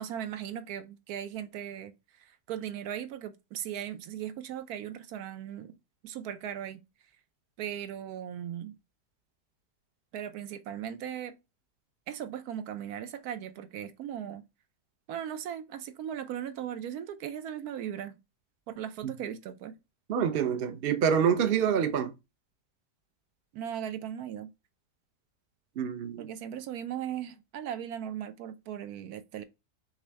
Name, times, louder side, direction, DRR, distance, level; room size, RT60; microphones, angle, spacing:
voice 1, 0.0-5.7 6.0-6.8 7.6-8.8 10.1-11.4 12.1-14.4 15.1-18.2 18.7-19.8 23.5-24.5 26.2-29.4, right 10 dB, 80° right, 1.1 m, -38 dB
voice 2, 20.1-22.1 25.8-26.3, right 7 dB, 55° right, 0.7 m, -26 dB
6.0 x 2.2 x 3.3 m
omnidirectional pair, 1.6 m